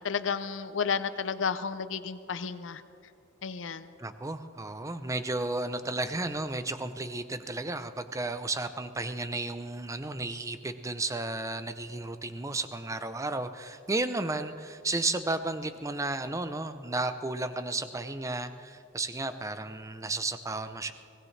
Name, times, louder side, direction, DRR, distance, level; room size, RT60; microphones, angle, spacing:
voice 1, 0.0-2.8 3.4-3.9, left 6 dB, 75° left, 12 dB, 0.6 m, -32 dB
voice 2, 4.0-20.9, right 2 dB, 15° right, 11 dB, 0.6 m, -33 dB
23.5 x 17.5 x 3.3 m, 2.5 s
head